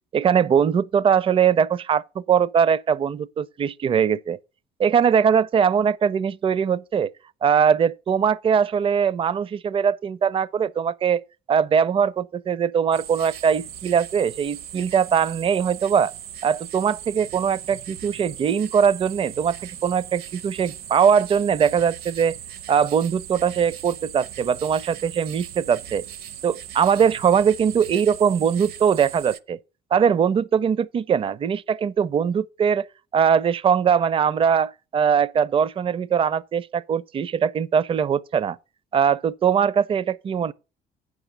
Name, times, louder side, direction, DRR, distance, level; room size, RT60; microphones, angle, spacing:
voice 1, 0.1-4.4 4.8-7.1 7.4-11.2 11.5-16.1 16.4-22.4 22.7-26.0 26.4-29.6 29.9-32.9 33.1-38.6 38.9-40.5, right 7 dB, 30° right, 0.5 m, -21 dB
sound 1, 12.9-29.4, right 10 dB, 70° right, 0.8 m, -39 dB
8.7 x 6.1 x 6.5 m
cardioid pair, 110°, 17 cm